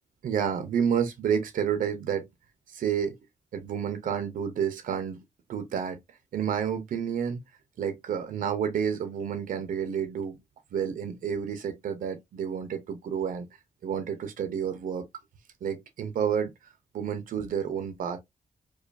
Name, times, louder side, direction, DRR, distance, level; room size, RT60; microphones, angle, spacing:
voice 1, 0.2-2.3 2.7-3.2 3.5-5.2 5.5-6.0 6.3-7.4 7.8-10.4 10.7-13.5 13.8-15.1 15.6-16.5 16.9-18.2, right 8 dB, 80° right, 0.7 m, -30 dB
4.8 x 2.3 x 2.5 m
wide cardioid pair, 115°, 14 cm